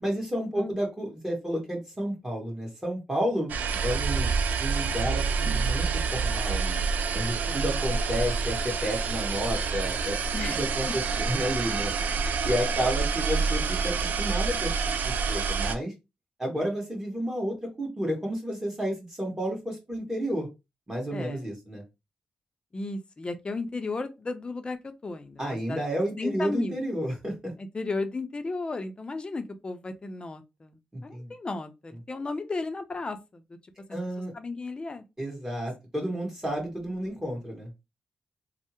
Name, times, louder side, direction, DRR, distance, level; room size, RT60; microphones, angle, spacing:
voice 1, 0.0-3.5 3.8-4.3 4.6-5.9 6.1-6.8 7.1-10.2 10.5-11.9 12.4-14.7 15.0-15.9 16.4-20.5 20.9-21.8 25.4-27.5 30.9-31.3 33.9-34.3 35.2-37.7, equal, 20° right, 1.7 m, -31 dB
sound 1, 3.5-15.8, right 5 dB, 75° right, 0.3 m, -28 dB
voice 2, 21.1-21.4 22.7-25.8 26.2-26.8 27.6-33.6 33.9-34.0 34.3-35.0, left 3 dB, 35° left, 0.5 m, -34 dB
3.2 x 2.0 x 2.9 m
cardioid pair, 60°, 3 cm